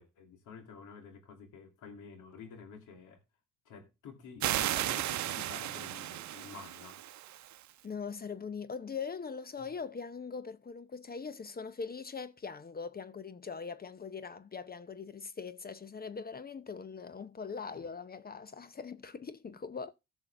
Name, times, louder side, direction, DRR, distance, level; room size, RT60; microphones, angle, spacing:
voice 1, 0.0-3.2 3.6-7.0 9.6-9.7 17.7-17.9 19.5-19.6, left 5 dB, 80° left, 2.7 m, -50 dB
sound 1, 4.4-7.7, right 13 dB, 70° right, 0.7 m, -35 dB
voice 2, 7.8-19.9, left 5 dB, 30° left, 0.8 m, -41 dB
15.0 x 6.2 x 3.4 m
cardioid pair, 90°, 30 cm